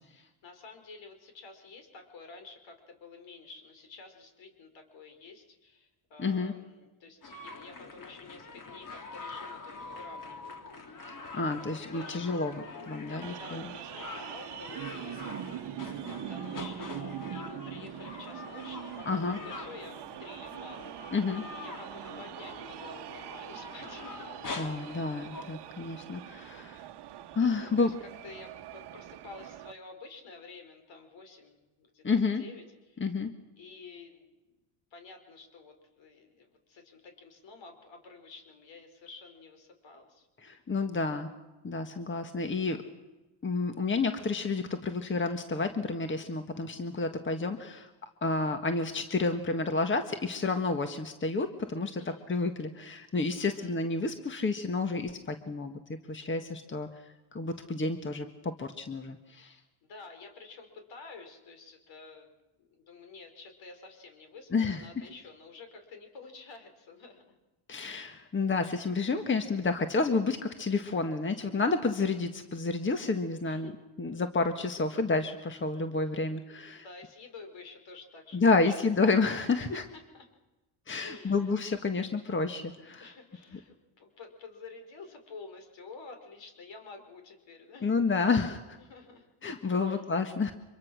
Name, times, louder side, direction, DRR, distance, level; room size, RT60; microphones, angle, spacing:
voice 1, 0.1-11.0 11.4-12.3 13.1-15.8 16.1-24.4 25.7-26.3 27.4-33.0 33.6-34.2 34.9-40.3 52.0-52.2 53.3-53.8 59.4-62.3 62.6-67.3 73.4-73.8 76.7-78.9 79.6-80.3 81.0-81.6 83.0-88.1 88.8-89.3 89.8-90.1, left 4 dB, 65° left, 5 dB, 5.1 m, -50 dB
voice 2, 6.2-6.5 11.0-13.7 19.0-19.4 21.1-21.4 24.6-26.8 27.3-27.9 32.0-32.4 33.0-33.3 40.4-41.3 41.6-42.8 43.4-55.8 56.1-56.9 57.3-59.5 64.5-65.0 67.7-73.7 74.0-76.8 78.3-79.8 80.9-83.1 87.8-88.8 89.4-90.5, left 3 dB, 25° left, 7 dB, 1.6 m, -30 dB
sound 1, 7.2-25.6, left 3 dB, 40° left, 3.3 m, -44 dB
sound 2, 13.2-29.7, right 11 dB, 55° right, 1.2 m, -43 dB
25.0 x 23.0 x 6.3 m, 1.1 s
supercardioid pair, 85°, 49 cm